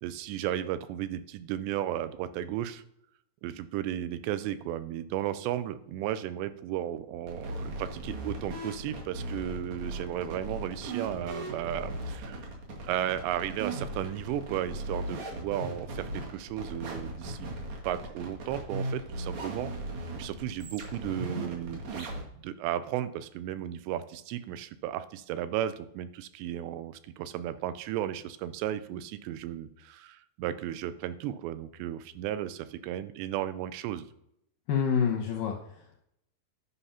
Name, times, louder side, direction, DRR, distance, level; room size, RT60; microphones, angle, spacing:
voice 1, 0.0-2.8 3.4-12.4 12.8-17.5 17.9-19.7 20.1-22.1 22.4-34.1, right 11 dB, 85° right, 13 dB, 2.8 m, -34 dB
sound 1, 7.3-22.2, right 1 dB, 50° right, 2.6 m, -38 dB
voice 2, 34.7-36.0, left 7 dB, 80° left, 2 dB, 2.0 m, -28 dB
9.9 x 5.7 x 5.6 m, 0.76 s
omnidirectional pair, 5.0 m